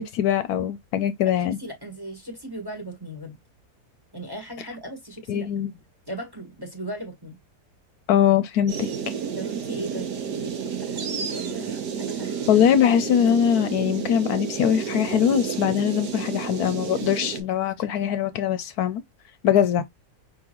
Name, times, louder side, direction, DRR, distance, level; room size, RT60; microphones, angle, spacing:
voice 1, 0.0-1.6 5.3-5.7 8.1-8.9 12.5-19.0 19.4-19.8, left 9 dB, 75° left, 1.0 m, -22 dB
voice 2, 1.2-3.4 4.1-5.5 6.1-7.4 9.3-12.7 19.5-19.7, right 1 dB, 15° right, 1.2 m, -37 dB
sound 1, 8.7-17.4, right 7 dB, 80° right, 1.6 m, -31 dB
5.0 x 3.6 x 2.9 m
omnidirectional pair, 1.7 m